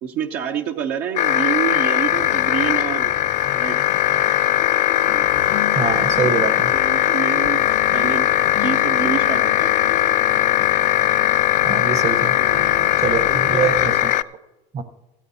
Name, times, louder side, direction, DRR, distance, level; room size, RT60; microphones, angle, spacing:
voice 1, 0.0-3.1 3.5-3.8 6.7-7.6 7.9-9.7 12.4-13.7, right 8 dB, 70° right, 4 dB, 0.8 m, -28 dB
sound 1, 1.2-14.2, left 12 dB, 50° left, 0.4 m, -19 dB
sound 2, 2.1-14.0, left 7 dB, 85° left, 1.4 m, -35 dB
voice 2, 5.7-6.7 11.6-12.4 13.0-14.2 14.7-14.8, right 6 dB, 45° right, 10 dB, 1.0 m, -24 dB
15.5 x 13.5 x 2.8 m, 0.99 s
supercardioid pair, 80°, 16 cm